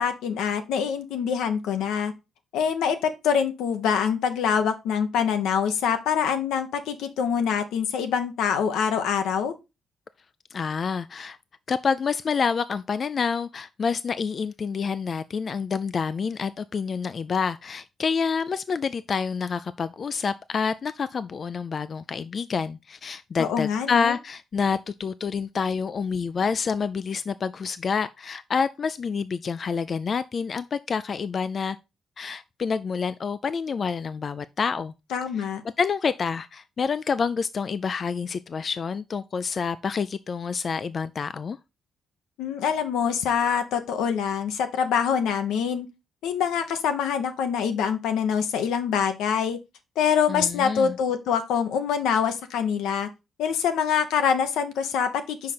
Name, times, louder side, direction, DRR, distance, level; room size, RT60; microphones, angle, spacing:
voice 1, 0.0-2.1 2.5-9.5 23.4-24.1 35.1-35.6 42.4-45.9 46.2-49.6 50.0-53.1 53.4-55.5, left 7 dB, 85° left, 1.0 m, -25 dB
voice 2, 10.5-11.4 11.7-31.8 32.2-34.9 35.4-35.5 35.8-41.6 50.3-51.0, left 5 dB, 45° left, 0.4 m, -28 dB
5.7 x 5.0 x 4.3 m
cardioid pair, 90°, 0 cm